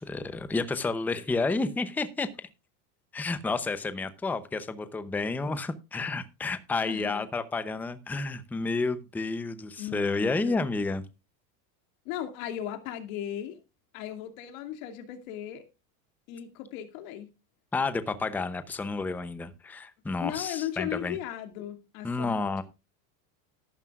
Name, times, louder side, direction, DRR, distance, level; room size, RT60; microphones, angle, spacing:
voice 1, 0.0-2.3 3.1-11.0 17.7-21.2 22.0-22.6, left 3 dB, 5° left, 0.6 m, -30 dB
voice 2, 6.8-7.3 9.8-10.6 12.1-13.6 13.9-15.6 16.3-17.3 20.2-22.3, left 11 dB, 65° left, 2.5 m, -37 dB
13.5 x 12.0 x 2.4 m
supercardioid pair, 155°, 46 cm